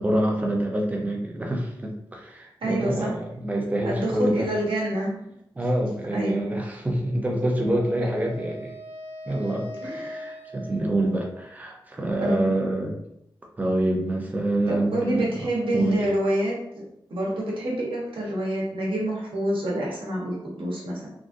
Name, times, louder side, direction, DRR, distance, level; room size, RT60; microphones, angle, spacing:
voice 1, 0.0-4.5 5.6-8.7 9.3-13.0 13.6-15.4 15.7-16.0, right 1 dB, 20° right, 0 dB, 0.6 m, -26 dB
voice 2, 2.6-3.1 3.8-5.2 6.1-6.4 9.8-10.1 12.2-12.6 14.7-16.6 17.1-21.1, right 1 dB, 80° right, -3 dB, 1.0 m, -27 dB
Wind instrument woodwind instrument, 7.6-11.7, left 1 dB, 60° right, 1.1 m, -41 dB
3.5 x 2.5 x 2.5 m, 0.78 s
wide cardioid pair, 130°, 9 cm